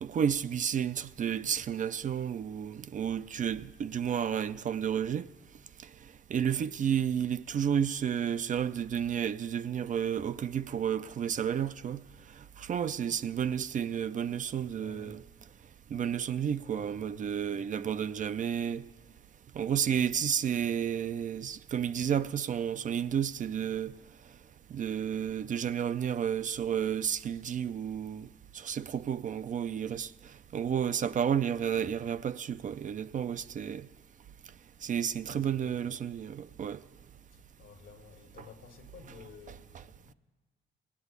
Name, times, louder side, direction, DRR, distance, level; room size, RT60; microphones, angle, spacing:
voice 1, 0.0-5.3 6.3-12.0 12.6-15.2 15.9-18.8 19.6-23.9 24.7-28.3 28.5-30.1 30.5-33.9 34.8-36.8, right 8 dB, 40° right, 0.4 m, -31 dB
voice 2, 14.7-15.2 16.6-17.7 35.3-36.0 37.3-40.1, left 6 dB, 80° left, 1.5 m, -53 dB
18.0 x 7.9 x 8.1 m
cardioid pair, 90°, 20 cm